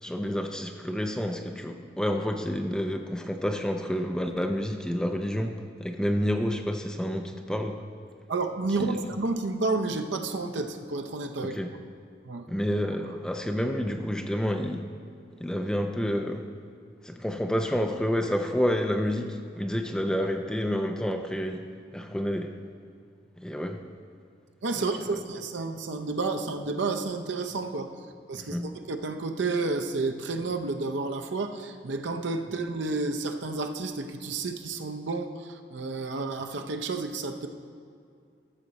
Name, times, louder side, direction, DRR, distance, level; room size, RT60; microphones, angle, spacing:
voice 1, 0.0-7.8 8.8-9.0 11.4-11.7 12.5-14.9 15.4-16.5 17.0-21.6 21.9-22.5 23.4-23.8 24.7-25.2 28.3-28.7, equal, 5° left, 4 dB, 0.4 m, -29 dB
voice 2, 8.3-11.6 12.2-12.5 24.6-27.9 28.3-37.5, right 3 dB, 75° right, 6 dB, 0.7 m, -31 dB
13.0 x 6.5 x 4.1 m, 2.4 s
head